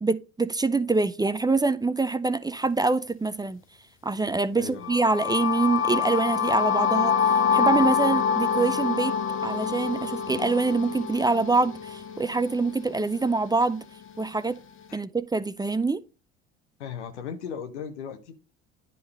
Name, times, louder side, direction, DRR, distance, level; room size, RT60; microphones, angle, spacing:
voice 1, 0.0-3.6 4.0-7.1 7.5-13.8 14.2-14.6 14.9-16.0, right 3 dB, 10° right, 0.6 m, -25 dB
voice 2, 4.5-5.0 14.9-15.0 16.8-18.3, left 7 dB, 80° left, 1.4 m, -37 dB
sound 1, 4.8-12.7, left 7 dB, 35° left, 1.0 m, -26 dB
10.0 x 4.1 x 5.0 m
hypercardioid pair, 70°, 34 cm